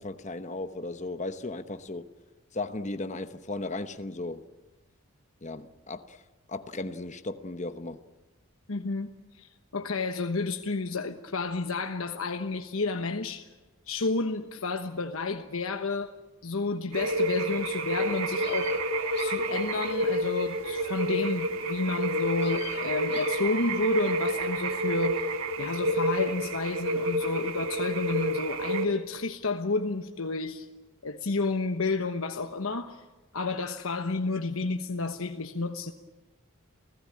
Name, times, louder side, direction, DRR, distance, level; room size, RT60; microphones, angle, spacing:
voice 1, 0.0-2.1 2.5-4.4 5.4-6.2 6.5-8.0, left 2 dB, 35° left, 1.0 m, -36 dB
voice 2, 8.7-9.1 9.4-13.5 13.9-16.1 16.4-18.7 19.2-25.2 25.6-30.7 31.0-33.0 33.3-35.9, left 3 dB, 75° left, 1.2 m, -31 dB
sound 1, 16.9-28.9, right 1 dB, 80° right, 2.1 m, -29 dB
sound 2, 18.4-21.3 22.4-24.8, left 7 dB, 50° left, 2.1 m, -45 dB
29.0 x 17.0 x 8.7 m
head